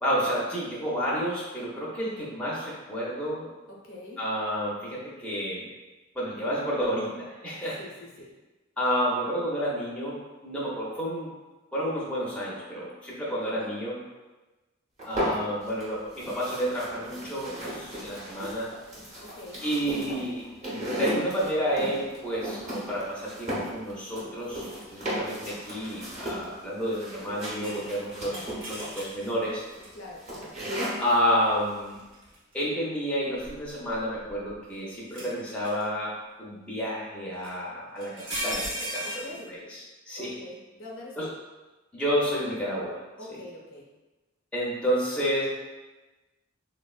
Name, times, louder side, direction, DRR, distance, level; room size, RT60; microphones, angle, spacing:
voice 1, 0.0-3.5 4.2-5.7 6.2-7.8 8.8-10.2 10.4-11.3 11.7-14.0 15.1-18.7 19.6-20.4 21.0-24.6 24.9-29.6 31.0-32.0 32.5-36.1 36.4-38.1 38.4-39.2 39.5-39.8 40.1-40.3 41.2-41.3 41.9-43.0 44.5-45.5, equal, 5° left, -7 dB, 0.5 m, -30 dB
voice 2, 3.7-4.2 7.8-8.3 13.3-13.7 19.2-19.6 28.3-28.6 29.9-30.5 35.2-35.4 39.0-39.6 40.1-41.3 43.2-43.9, left 1 dB, 70° left, -3 dB, 0.6 m, -44 dB
sound 1, 15.0-15.8 16.1-31.1, equal, 35° right, 0.8 m, -35 dB
sound 2, 27.5-29.2 29.8-29.9 32.0-32.6 33.4-34.5 35.1-35.8 37.4-37.5 38.0-39.4, right 1 dB, 65° right, 0.7 m, -36 dB
3.4 x 2.0 x 2.3 m, 1.1 s
head